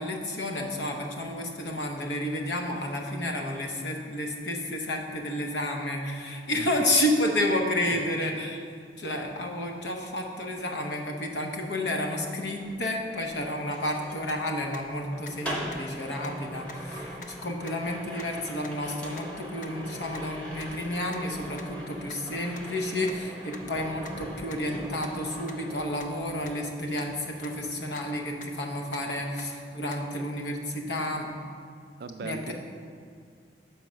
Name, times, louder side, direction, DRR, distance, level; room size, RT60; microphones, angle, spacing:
voice 1, 0.0-8.6 9.0-31.3 32.2-32.5, left 1 dB, 80° left, 1 dB, 0.8 m, -31 dB
sound 1, 12.5-26.5 26.8-28.3 28.6-28.9, equal, 5° left, 0.9 m, -41 dB
sound 2, 14.3-14.4 14.7-14.8 15.2-15.3 15.7-15.8 16.2-16.3 16.7-16.8 17.2-17.3 17.7-17.8 18.2-18.3 18.6-18.7 19.2-19.3 19.6-19.7 20.1-20.2 20.6-20.7 21.1-21.2 21.6-21.7 22.1-22.2 22.6-22.7 23.1-23.2 23.5-23.6 24.0-24.1 24.5-24.6 25.0-25.1 25.5-25.6 26.0-26.1 26.5-26.6 27.0-27.1 27.4-27.5 28.0-28.1 28.4-28.5 28.9-29.0 29.4-29.5 29.9-30.0, left 5 dB, 45° left, 0.5 m, -44 dB
voice 2, 32.0-32.5, right 4 dB, 60° right, 9 dB, 0.3 m, -38 dB
5.5 x 4.6 x 6.2 m, 2.1 s
head